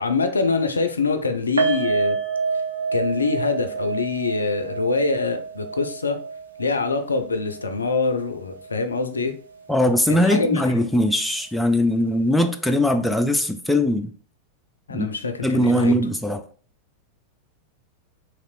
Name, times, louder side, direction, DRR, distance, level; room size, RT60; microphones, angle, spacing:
voice 1, 0.0-2.2 2.9-6.2 6.6-9.3 10.1-10.7 14.9-15.9, left 4 dB, 75° left, 0.3 m, -24 dB
sound 1, 1.6-8.8 9.0-9.2 9.6-9.7, right 5 dB, 80° right, 0.5 m, -28 dB
voice 2, 9.7-14.1 14.9-15.1 15.4-16.4, left 1 dB, 5° left, 0.3 m, -20 dB
2.9 x 2.9 x 2.4 m
figure-of-eight pair, 90°, 0 cm